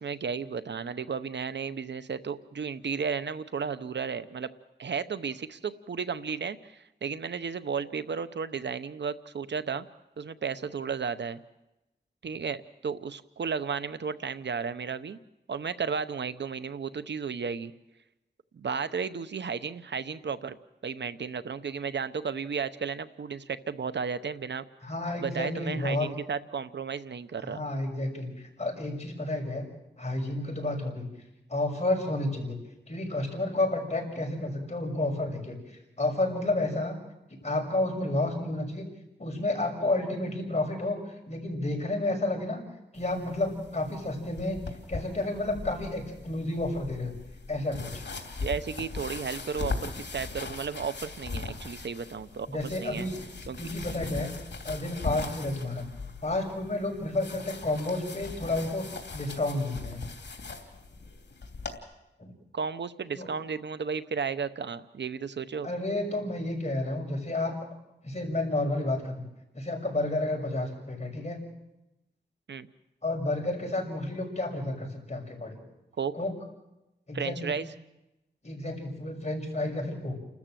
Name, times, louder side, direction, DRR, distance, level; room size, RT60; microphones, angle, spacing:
voice 1, 0.0-4.5 4.8-9.9 10.2-11.4 12.2-15.2 15.5-17.7 18.5-20.6 20.8-24.6 25.2-27.6 48.4-53.1 53.5-53.6 62.5-65.7 72.5-72.7 76.0-76.1 77.1-77.6, right 6 dB, 85° right, 13 dB, 0.8 m, -33 dB
voice 2, 24.8-26.1 27.4-28.3 28.6-29.6 30.0-31.1 31.5-32.6 32.9-37.0 37.3-38.9 39.2-41.0 41.3-42.6 42.9-44.6 44.9-47.1 47.5-48.0 52.5-53.2 53.6-54.3 54.6-55.9 56.2-60.0 62.2-62.3 63.1-63.3 65.6-67.5 68.0-69.2 69.5-71.4 73.0-75.6 76.1-76.3 77.1-77.6 78.4-80.2, left 2 dB, 40° left, 1 dB, 6.3 m, -31 dB
sound 1, 42.9-61.8, left 3 dB, 75° left, 3.0 m, -40 dB
30.0 x 13.5 x 7.6 m, 0.95 s
wide cardioid pair, 65°, 18 cm